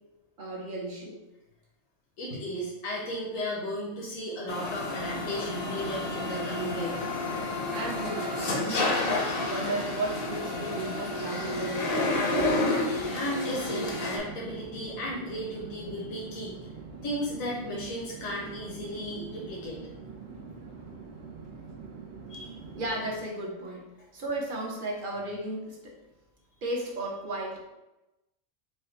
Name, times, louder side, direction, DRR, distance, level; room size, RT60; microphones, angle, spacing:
voice 1, 0.4-1.2 7.7-12.6 13.0-13.1 22.7-23.9 24.1-25.9 26.6-27.6, right 1 dB, 45° right, -1 dB, 1.0 m, -34 dB
voice 2, 2.2-7.0 12.9-16.7 17.0-19.8 22.3-22.6, equal, 80° left, -5 dB, 1.3 m, -35 dB
Chatter / Fixed-wing aircraft airplane, 4.4-23.3, right 5 dB, 70° right, 1.4 m, -44 dB
sound 1, 4.5-14.2, left 2 dB, 50° left, 0.8 m, -30 dB
4.9 x 2.2 x 4.3 m, 0.97 s
omnidirectional pair, 1.4 m